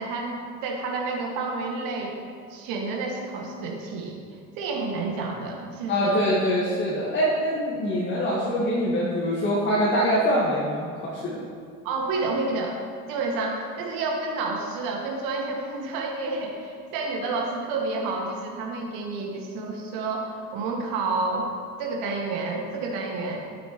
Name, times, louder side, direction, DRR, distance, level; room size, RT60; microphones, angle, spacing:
voice 1, 0.0-2.1 2.5-4.2 4.6-6.2 11.8-12.8 13.1-21.5 21.8-23.4, right 3 dB, 45° right, 0 dB, 2.0 m, -29 dB
voice 2, 5.9-11.4, equal, 25° left, -6 dB, 1.7 m, -24 dB
12.5 x 9.2 x 3.1 m, 2.1 s
figure-of-eight pair, 75°, 45 cm